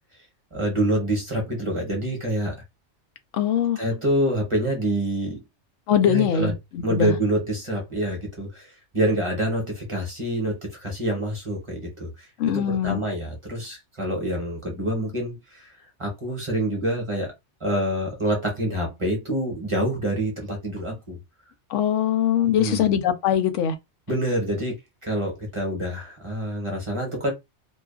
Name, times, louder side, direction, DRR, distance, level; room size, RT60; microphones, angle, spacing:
voice 1, 0.5-2.5 3.8-5.4 6.0-6.5 6.8-12.3 12.5-15.7 16.0-17.3 17.6-21.2 22.4-22.9 24.1-27.3, right 1 dB, 30° right, 0.9 m, -26 dB
voice 2, 3.3-3.8 5.9-7.1 12.4-13.0 21.7-23.8, left 9 dB, 90° left, 0.9 m, -22 dB
2.8 x 2.3 x 2.3 m
omnidirectional pair, 1.2 m